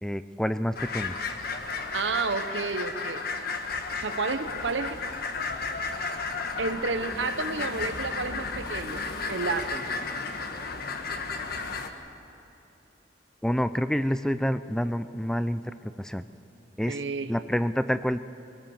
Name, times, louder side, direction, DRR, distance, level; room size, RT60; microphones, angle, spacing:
voice 1, 0.0-1.2 13.4-16.2 16.8-17.0 17.3-18.2, equal, 5° left, 12 dB, 0.4 m, -28 dB
sound 1, 0.8-11.9, left 4 dB, 55° left, 1.4 m, -33 dB
voice 2, 1.9-3.3 3.9-5.0 6.6-9.0 9.3-9.9 16.9-17.3, right 4 dB, 80° right, 10 dB, 1.0 m, -31 dB
23.5 x 18.0 x 7.2 m, 3.0 s
head